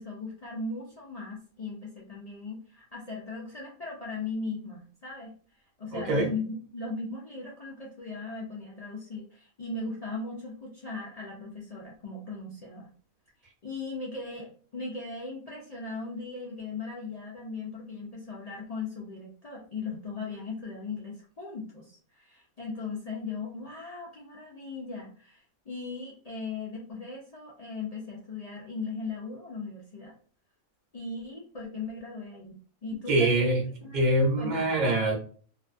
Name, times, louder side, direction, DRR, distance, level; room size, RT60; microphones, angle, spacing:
voice 1, 0.0-5.3 5.8-12.9 13.6-30.1 30.9-32.5 32.8-33.5 33.8-34.0 34.4-34.8, left 3 dB, 75° left, -5 dB, 0.3 m, -38 dB
voice 2, 5.9-6.3 33.1-33.6 33.9-35.1, right 1 dB, 40° right, -1 dB, 0.8 m, -24 dB
2.5 x 2.2 x 2.5 m, 0.43 s
omnidirectional pair, 1.4 m